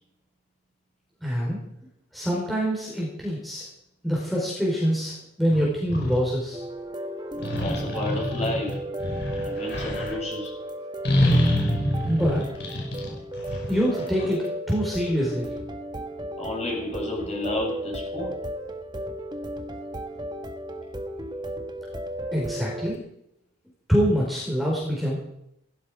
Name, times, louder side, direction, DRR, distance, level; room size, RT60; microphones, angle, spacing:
voice 1, 1.2-1.6 2.1-3.6 4.0-6.6 12.0-12.4 13.1-13.2 13.7-15.5 22.3-23.0 23.9-25.2, equal, ahead, -5 dB, 4.6 m, -25 dB
sound 1, 5.5-6.2 7.4-10.1 11.0-14.3, equal, 55° left, 5.6 m, -26 dB
sound 2, 6.5-23.0, right 1 dB, 20° right, 1.1 m, -35 dB
voice 2, 7.3-8.8 9.4-10.6 16.4-18.4, left 1 dB, 35° left, -2 dB, 7.3 m, -31 dB
17.5 x 16.0 x 5.0 m, 0.80 s
head